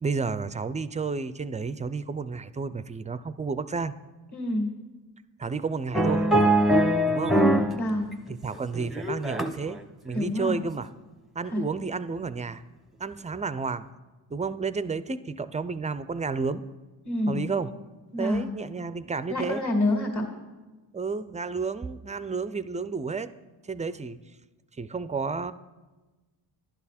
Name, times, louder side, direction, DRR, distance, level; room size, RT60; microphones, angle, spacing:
voice 1, 0.0-3.9 5.4-6.3 7.1-7.4 8.3-10.9 11.4-12.6 13.0-13.9 14.3-16.6 17.3-17.7 18.2-19.6 20.9-23.3 23.6-24.2 24.8-25.5, right 4 dB, 15° right, 14 dB, 0.3 m, -31 dB
voice 2, 4.3-4.7 7.7-8.1 10.1-10.6 11.5-11.6 17.1-17.4 18.1-18.5 19.3-20.3, left 1 dB, 40° left, 1 dB, 2.0 m, -27 dB
sound 1, 5.9-7.8 8.1-9.7 10.2-10.4, right 1 dB, ahead, 0.7 m, -22 dB
11.5 x 10.5 x 4.2 m, 1.2 s
cardioid pair, 80°, 45 cm